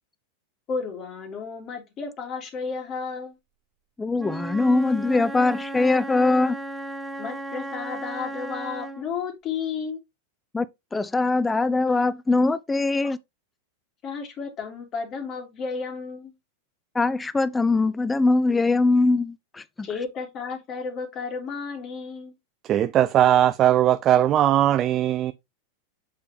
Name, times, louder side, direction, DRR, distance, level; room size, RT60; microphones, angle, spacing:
voice 1, 0.7-3.4 7.2-10.0 14.0-16.3 19.8-22.4, left 5 dB, 40° left, 3.1 m, -32 dB
voice 2, 4.0-6.6 10.5-10.7 10.9-13.2 16.9-19.4 19.8-19.9, left 3 dB, 15° left, 0.6 m, -21 dB
Wind instrument woodwind instrument, 4.1-9.1, right 2 dB, 10° right, 1.1 m, -35 dB
voice 3, 22.6-25.3, right 11 dB, 35° right, 0.4 m, -19 dB
6.8 x 5.0 x 3.6 m
hypercardioid pair, 105°, 0 cm